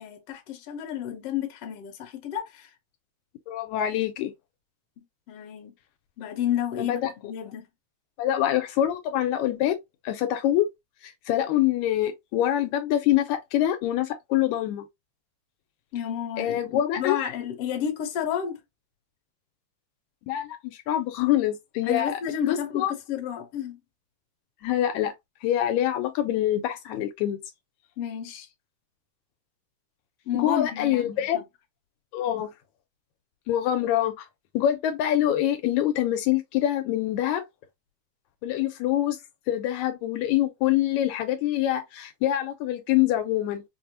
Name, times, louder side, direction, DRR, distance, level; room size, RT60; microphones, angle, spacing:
voice 1, 0.0-2.7 5.0-5.8 6.2-7.7 15.9-18.6 21.8-23.8 28.0-28.5 30.3-31.4, left 10 dB, 65° left, 1.7 m, -31 dB
voice 2, 3.5-4.3 6.8-7.1 8.2-9.8 10.1-10.7 11.0-14.9 16.4-17.2 20.2-22.2 22.5-22.9 24.6-25.1 25.4-27.4 30.3-31.4 32.1-32.5 33.5-34.3 34.5-37.4 38.4-39.2 39.5-43.6, left 12 dB, 80° left, 1.9 m, -25 dB
5.2 x 2.0 x 2.8 m
omnidirectional pair, 3.3 m